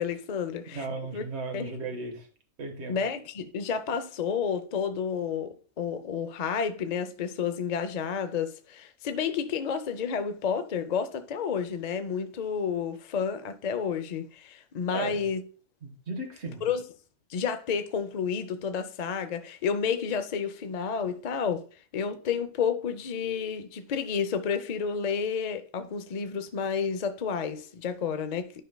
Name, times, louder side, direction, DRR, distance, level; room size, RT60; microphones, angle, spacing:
voice 1, 0.0-0.9 1.1-1.2 1.5-1.7 2.9-15.4 16.6-16.8 17.3-21.6 21.9-28.6, left 6 dB, 55° left, 0.4 m, -30 dB
voice 2, 0.7-2.3 2.6-3.0 14.9-15.2 15.8-16.7, right 3 dB, 55° right, 1.5 m, -36 dB
11.0 x 5.1 x 2.2 m
omnidirectional pair, 1.4 m